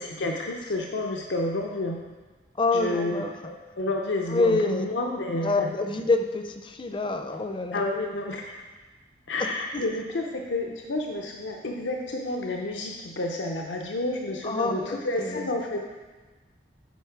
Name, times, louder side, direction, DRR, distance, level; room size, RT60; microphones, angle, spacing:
voice 1, 0.0-2.0 2.7-5.7 7.7-8.6 9.3-15.8, left 2 dB, 85° left, 1 dB, 0.7 m, -30 dB
voice 2, 2.6-3.3 4.3-4.9 5.4-7.8 9.7-9.8 14.4-15.5, left 3 dB, 25° left, 7 dB, 0.5 m, -26 dB
8.4 x 5.0 x 4.6 m, 1.3 s
head